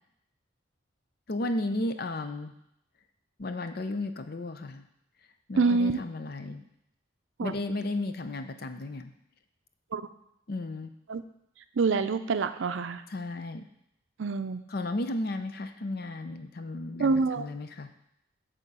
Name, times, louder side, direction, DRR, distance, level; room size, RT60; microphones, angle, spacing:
voice 1, 1.3-2.5 3.4-4.8 5.5-6.6 7.4-9.1 10.5-10.9 13.1-13.7 14.7-17.9, left 2 dB, 50° left, 9 dB, 0.6 m, -34 dB
voice 2, 5.6-6.0 7.4-7.5 9.9-10.0 11.1-11.2 11.8-13.0 14.2-14.6 17.0-17.5, right 4 dB, 75° right, 11 dB, 0.5 m, -26 dB
8.5 x 3.8 x 6.8 m, 0.79 s
head